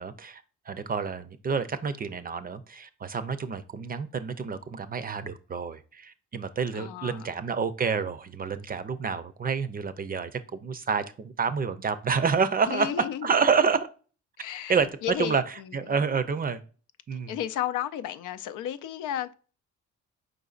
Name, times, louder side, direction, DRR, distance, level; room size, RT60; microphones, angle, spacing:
voice 1, 0.0-13.9 14.7-16.6 17.1-17.4, right 5 dB, 30° right, 0.5 m, -28 dB
voice 2, 6.7-7.3 12.7-13.3 14.4-16.0 17.3-19.3, left 11 dB, 85° left, 0.5 m, -33 dB
4.8 x 3.9 x 2.4 m
cardioid pair, 90°, 30 cm